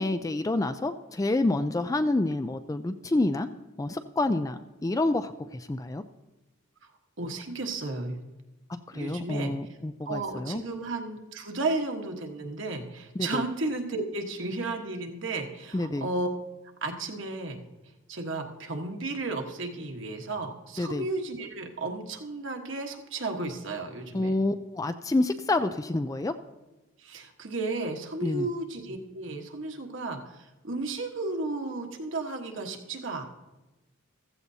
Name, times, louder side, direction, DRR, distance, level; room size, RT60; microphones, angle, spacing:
voice 1, 0.0-3.5 3.8-6.0 8.7-10.6 13.2-13.4 15.7-16.1 20.8-21.0 24.1-26.3 28.2-28.5, left 2 dB, 15° left, 10 dB, 0.3 m, -28 dB
voice 2, 7.2-8.2 8.9-9.5 10.0-16.3 16.8-17.6 18.1-24.3 27.0-33.2, right 2 dB, 60° right, 3 dB, 1.3 m, -33 dB
15.0 x 14.5 x 2.8 m, 1.1 s
head